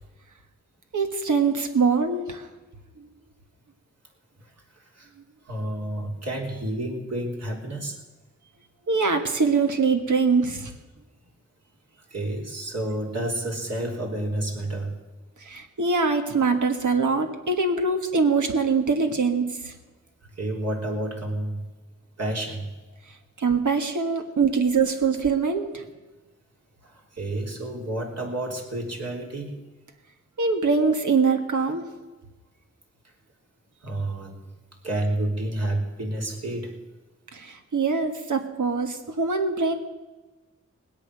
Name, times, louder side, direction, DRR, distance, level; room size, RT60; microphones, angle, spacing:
voice 1, 0.9-2.5 8.9-10.7 15.4-19.7 23.4-25.8 30.4-31.8 37.3-39.7, right 4 dB, 85° right, 5 dB, 1.5 m, -23 dB
voice 2, 4.4-5.1 5.4-8.0 11.9-15.0 20.3-21.7 22.2-22.8 25.8-25.9 26.8-29.6 33.0-33.1 33.8-34.5 34.8-36.8, right 1 dB, 60° right, -1 dB, 3.4 m, -30 dB
19.0 x 8.4 x 6.7 m, 1.2 s
wide cardioid pair, 55°, 29 cm